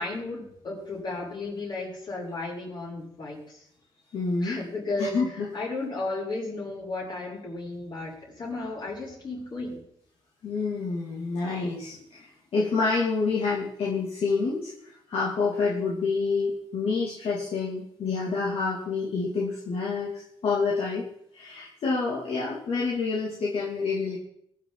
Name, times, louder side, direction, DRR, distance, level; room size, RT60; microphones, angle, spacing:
voice 1, 0.0-3.6 4.4-5.2 5.5-9.8, left 2 dB, 45° left, -4 dB, 6.5 m, -34 dB
voice 2, 4.1-4.6 5.0-5.5 10.4-12.2 12.5-21.1 21.3-24.2, left 4 dB, 70° left, -4 dB, 2.7 m, -28 dB
22.0 x 7.8 x 4.1 m, 0.70 s
cardioid pair, 90°, 10 cm